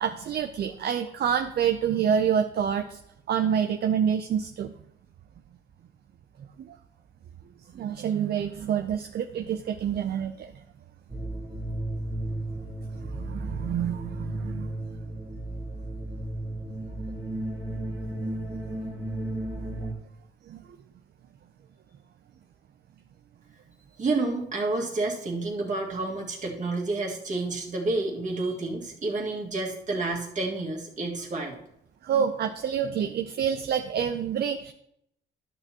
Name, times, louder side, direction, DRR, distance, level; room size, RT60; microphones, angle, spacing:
voice 1, 0.0-3.0 3.3-4.7 6.7-6.8 7.7-10.5 13.1-14.7 20.5-20.6 32.0-34.7, right 8 dB, 55° right, 7 dB, 0.5 m, -27 dB
sound 1, 11.1-19.9, right 1 dB, 25° right, 1.8 m, -34 dB
voice 2, 24.0-31.6, right 2 dB, 40° right, -1 dB, 2.0 m, -29 dB
12.0 x 6.6 x 2.9 m, 0.76 s
cardioid pair, 90°, 20 cm